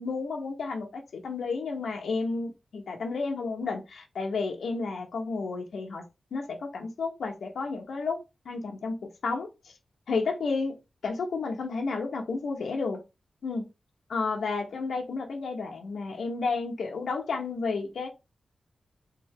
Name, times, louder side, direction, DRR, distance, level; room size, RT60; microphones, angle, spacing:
voice 1, 0.0-6.0 6.3-8.2 8.4-9.5 10.1-13.0 13.4-13.7 14.1-18.1, left 4 dB, 90° left, 1.0 m, -31 dB
3.8 x 3.4 x 3.6 m
wide cardioid pair, 160°, 0 cm